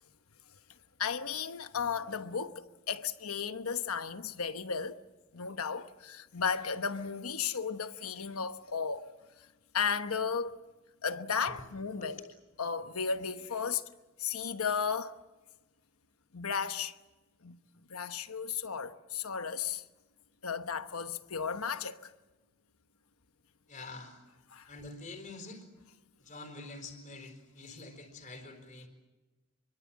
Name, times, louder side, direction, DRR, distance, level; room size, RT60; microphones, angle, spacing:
voice 1, 1.0-5.0 5.3-9.1 9.7-10.6 11.0-12.2 12.6-13.8 14.2-15.2 16.3-16.9 17.4-17.6 17.9-19.8 20.4-22.1 24.5-24.7, left 6 dB, 85° left, 1.1 m, -34 dB
voice 2, 23.7-24.2 24.7-25.7 26.2-28.9, left 3 dB, 35° left, 4.3 m, -46 dB
26.0 x 24.0 x 7.5 m
head